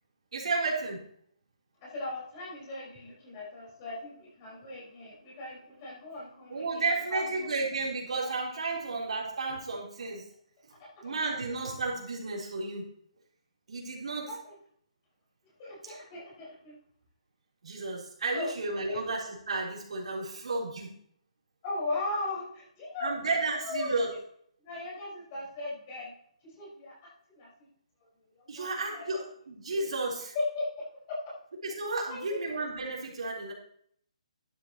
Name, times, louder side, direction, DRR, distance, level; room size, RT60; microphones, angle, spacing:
voice 1, 0.3-1.0 6.5-10.3 10.6-10.7 11.0-12.8 13.7-14.3 15.8-16.0 17.6-20.9 23.0-24.1 28.5-30.3 31.6-33.5, right 3 dB, 65° right, -3 dB, 3.7 m, -32 dB
voice 2, 1.8-7.5 8.7-8.8 10.8-10.9 14.3-14.5 15.6-16.7 18.3-18.5 18.9-19.0 21.6-23.1 23.5-23.9 24.6-26.1 26.4-27.5 28.4-28.7 28.9-29.2 30.3-31.3 32.1-32.4, left 2 dB, 25° left, -5 dB, 4.8 m, -38 dB
12.0 x 9.9 x 3.0 m, 0.64 s
hypercardioid pair, 165°, 4 cm